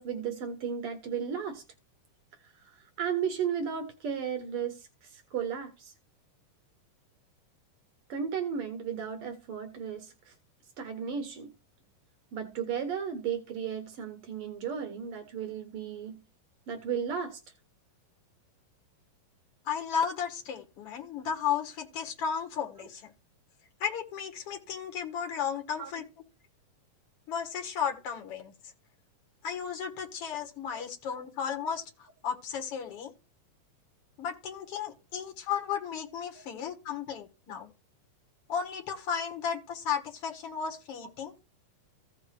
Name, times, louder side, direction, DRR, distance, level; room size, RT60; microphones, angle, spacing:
voice 1, 0.0-1.6 2.6-5.9 8.1-10.3 10.8-11.5 12.3-16.1 16.7-17.4 25.8-25.9 30.7-30.8 36.3-36.4, right 7 dB, 90° right, 1.2 m, -34 dB
voice 2, 19.7-23.1 23.8-26.0 27.3-28.5 29.4-33.1 34.2-37.7 38.5-41.3, left 7 dB, 55° left, 2.0 m, -34 dB
15.0 x 5.2 x 3.2 m
omnidirectional pair, 3.9 m